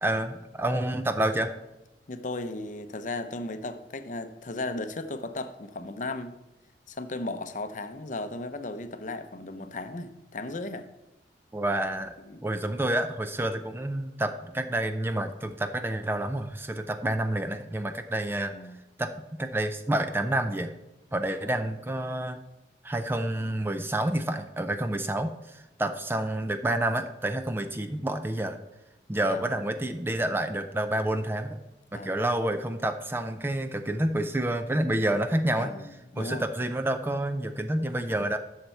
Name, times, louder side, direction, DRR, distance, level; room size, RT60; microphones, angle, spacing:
voice 1, 0.0-1.6 11.5-12.1 12.4-18.5 19.0-19.1 19.4-20.7 21.1-22.4 22.8-28.6 29.1-31.6 31.9-35.7 36.2-38.4, right 1 dB, 15° right, 9 dB, 0.4 m, -28 dB
voice 2, 2.1-6.4 6.9-10.9 12.2-12.5 18.5-18.8 21.4-21.7 29.2-29.5 31.9-32.1 35.6-36.5, left 2 dB, 45° left, 9 dB, 0.6 m, -36 dB
11.0 x 6.6 x 4.5 m, 0.95 s
head